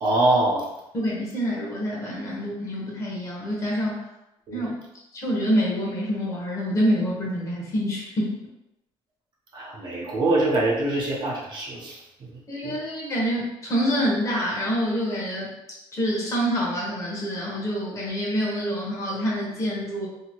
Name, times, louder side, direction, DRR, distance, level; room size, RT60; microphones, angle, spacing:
voice 1, 0.0-0.7 4.5-4.6 9.5-12.3 12.6-12.8, right 2 dB, 45° right, -3 dB, 0.6 m, -24 dB
voice 2, 0.9-4.1 4.5-4.8 5.1-8.4 12.5-15.5 15.9-20.1, equal, 30° left, -4 dB, 0.9 m, -26 dB
2.8 x 2.7 x 2.8 m, 0.90 s
cardioid pair, 170°, 11 cm